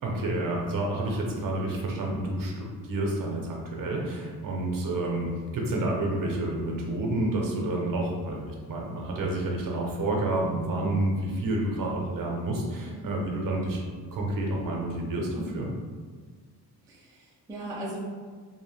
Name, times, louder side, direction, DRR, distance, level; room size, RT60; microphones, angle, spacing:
voice 1, 0.0-13.8 14.1-15.7, right 1 dB, 55° right, -1 dB, 0.6 m, -29 dB
voice 2, 12.9-13.2 16.9-18.0, right 1 dB, 10° right, -5 dB, 0.3 m, -39 dB
2.7 x 2.0 x 3.1 m, 1.6 s
cardioid pair, 130°, 41 cm